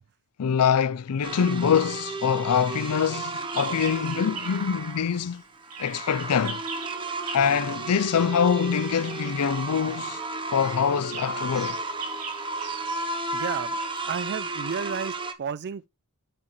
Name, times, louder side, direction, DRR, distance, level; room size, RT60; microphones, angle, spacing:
voice 1, 0.4-5.4 5.8-6.6 7.3-10.2 10.5-11.8, left 7 dB, 80° left, 0.4 m, -24 dB
sound 1, 1.2-15.3, right 3 dB, 20° right, 0.7 m, -33 dB
Bird vocalization bird call bird song, 2.5-4.8 5.1-14.6, right 6 dB, 90° right, 1.9 m, -43 dB
voice 2, 13.3-13.8 14.0-15.9, right 7 dB, 50° right, 0.4 m, -32 dB
8.6 x 4.9 x 3.1 m
head